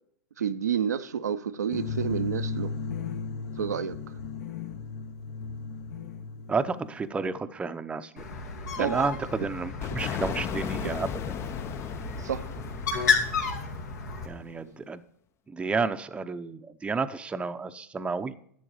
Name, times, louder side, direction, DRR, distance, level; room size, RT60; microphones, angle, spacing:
voice 1, 0.4-2.7 3.6-4.0 8.8-9.1 10.8-11.0 12.2-12.5, right 8 dB, 90° right, 0.6 m, -29 dB
sound 1, 1.7-7.1, left 5 dB, 65° left, 1.3 m, -35 dB
voice 2, 6.5-8.2 8.8-11.1 14.2-15.0 15.5-18.3, right 4 dB, 10° right, 0.6 m, -31 dB
Bird, 8.2-14.3, left 5 dB, 85° left, 2.5 m, -32 dB
sound 2, 9.8-14.5, left 9 dB, 30° left, 0.5 m, -36 dB
11.0 x 7.9 x 4.8 m
hypercardioid pair, 110°, 9 cm